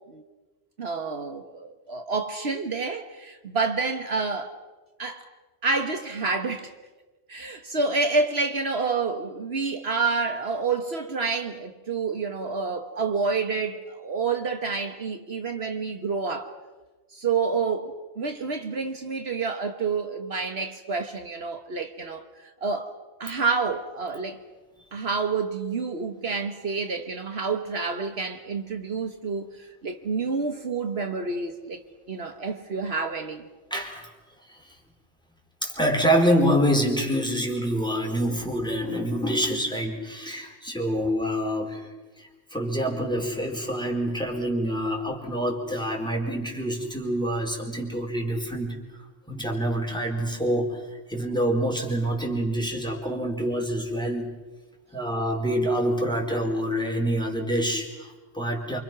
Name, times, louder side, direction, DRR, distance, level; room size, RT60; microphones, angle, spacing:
voice 1, 0.8-4.5 5.0-5.3 5.6-6.7 7.3-16.5 17.1-22.9 23.2-24.4 24.9-31.8 32.1-33.5, right 4 dB, 65° right, 1.7 m, -28 dB
voice 2, 33.7-34.1 35.6-41.8 42.2-48.7 49.3-50.8 51.1-54.3 54.9-58.8, equal, 5° left, 4.4 m, -26 dB
29.0 x 26.5 x 6.1 m
omnidirectional pair, 1.2 m